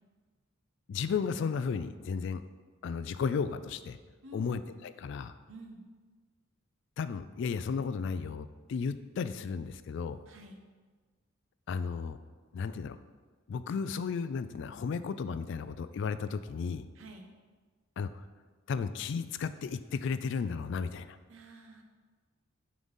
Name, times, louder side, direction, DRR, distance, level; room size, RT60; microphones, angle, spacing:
voice 1, 0.9-2.4 2.8-4.0 4.3-5.3 7.0-10.2 11.7-12.2 12.5-13.0 13.5-16.9 18.0-18.1 18.7-21.2, left 5 dB, 65° left, 12 dB, 0.3 m, -34 dB
voice 2, 4.2-4.5 5.5-5.8 10.3-10.6 16.9-17.3 21.3-21.8, right 1 dB, 80° right, 3 dB, 1.0 m, -49 dB
9.4 x 3.9 x 5.4 m, 1.4 s
head